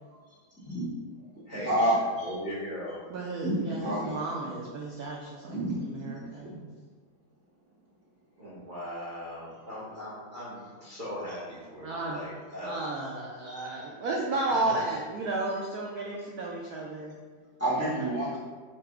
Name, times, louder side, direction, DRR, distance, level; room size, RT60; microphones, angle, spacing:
voice 1, 0.6-0.9 1.3-2.3 3.4-4.1 5.5-6.7 12.8-12.9 13.4-13.8 17.6-18.4, right 1 dB, 20° left, -9 dB, 0.4 m, -30 dB
voice 2, 1.5-1.9 2.2-3.0 8.4-12.8 14.6-14.7, equal, 65° right, -8 dB, 0.4 m, -39 dB
voice 3, 3.1-6.5 11.8-12.2 12.6-17.1, right 2 dB, 85° right, -2 dB, 0.8 m, -33 dB
5.6 x 2.0 x 3.5 m, 1.5 s
omnidirectional pair, 2.2 m